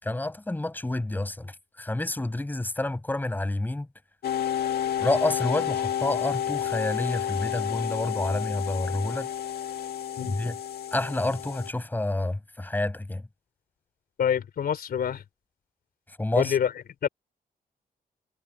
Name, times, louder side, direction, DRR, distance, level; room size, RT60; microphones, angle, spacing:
voice 1, 0.0-3.9 5.0-9.3 10.2-10.6 10.9-13.2 16.2-16.5, left 2 dB, 10° left, 6.2 m, -29 dB
sound 1, 4.2-11.7, left 10 dB, 90° left, 1.7 m, -30 dB
voice 2, 14.2-15.2 16.4-16.7 17.0-17.1, left 8 dB, 75° left, 3.7 m, -26 dB
wide cardioid pair, 160°, 16 cm